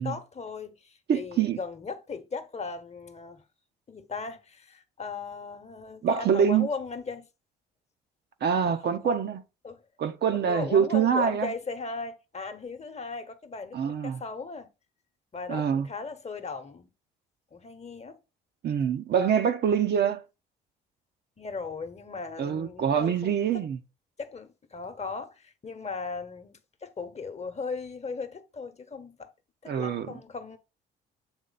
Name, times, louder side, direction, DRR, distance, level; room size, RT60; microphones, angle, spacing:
voice 1, 0.0-3.4 3.9-7.3 8.7-9.2 9.6-9.8 10.4-14.7 15.3-16.9 17.5-18.2 21.4-23.6 24.2-29.3 29.6-30.6, left 4 dB, 30° left, 1.1 m, -37 dB
voice 2, 1.1-1.6 6.0-6.7 8.4-9.4 10.0-11.5 13.7-14.2 15.5-15.9 18.6-20.2 22.4-23.8 29.7-30.1, right 7 dB, 50° right, 0.8 m, -25 dB
8.0 x 3.2 x 4.0 m
hypercardioid pair, 65°, 21 cm